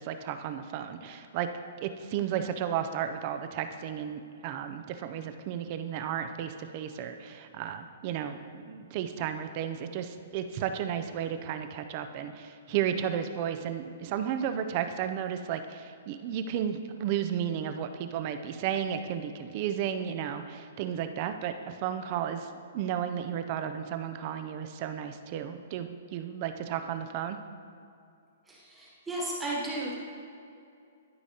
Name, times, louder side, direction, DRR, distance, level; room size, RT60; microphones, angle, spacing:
voice 1, 0.0-1.5 1.8-27.4, right 9 dB, 30° right, 8 dB, 0.3 m, -33 dB
voice 2, 28.5-30.0, right 1 dB, 5° right, -6 dB, 1.2 m, -34 dB
12.0 x 5.0 x 2.8 m, 2.5 s
hypercardioid pair, 170°, 0 cm